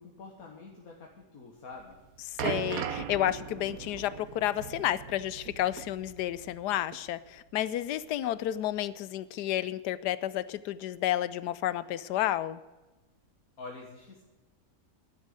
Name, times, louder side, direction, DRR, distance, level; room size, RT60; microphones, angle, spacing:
voice 1, 0.0-2.0 13.6-14.2, left 3 dB, 65° left, 0 dB, 1.9 m, -46 dB
sound 1, 1.8-6.7 6.9-7.1 7.8-7.9, right 9 dB, 65° right, 1.2 m, -38 dB
voice 2, 2.3-12.6, left 13 dB, 85° left, 17 dB, 1.2 m, -31 dB
11.5 x 9.9 x 7.7 m, 1.1 s
omnidirectional pair, 1.7 m